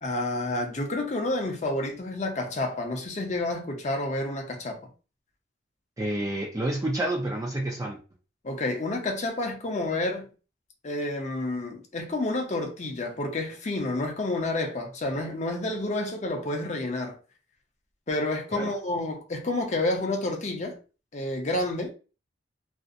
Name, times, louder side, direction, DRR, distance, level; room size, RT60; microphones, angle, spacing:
voice 1, 0.0-4.8 8.4-10.3 10.8-17.2 18.1-20.8 21.1-21.9, left 2 dB, 35° left, 0.5 m, -29 dB
voice 2, 6.0-8.0 18.5-18.8, right 1 dB, 15° right, 0.4 m, -29 dB
2.4 x 2.0 x 2.5 m
head